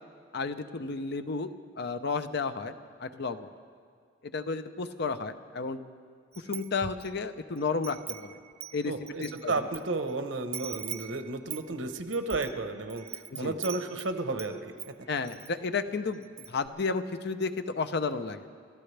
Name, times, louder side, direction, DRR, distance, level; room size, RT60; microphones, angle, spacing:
voice 1, 0.3-1.5 1.8-2.7 3.0-3.5 4.2-5.8 6.4-8.4 8.7-8.9 9.2-9.5 13.3-13.6 15.1-18.5, left 4 dB, 60° left, 10 dB, 0.7 m, -32 dB
Wind chime, 6.3-7.2 7.6-9.8 10.1-10.2 10.5-14.5 14.8-15.5 15.9-16.0 16.2-16.7, right 9 dB, 35° right, 0.5 m, -42 dB
voice 2, 8.9-14.9, right 3 dB, 85° right, 7 dB, 1.1 m, -33 dB
29.5 x 14.0 x 3.4 m, 2.1 s
head